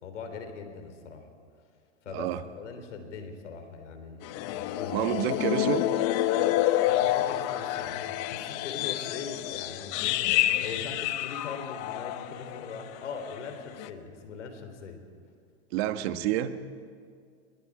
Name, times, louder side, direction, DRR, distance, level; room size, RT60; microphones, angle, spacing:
voice 1, 0.0-1.2 2.1-2.3 2.5-5.1 6.8-15.0, left 5 dB, 90° left, 6 dB, 3.7 m, -41 dB
voice 2, 2.1-2.4 4.9-5.9 15.7-16.6, right 12 dB, 60° right, 10 dB, 1.4 m, -28 dB
sound 1, 4.2-12.8 13.1-13.4 13.8-13.9, left 14 dB, 45° left, 1.0 m, -28 dB
27.5 x 21.0 x 5.0 m, 2.2 s
hypercardioid pair, 120°, 35 cm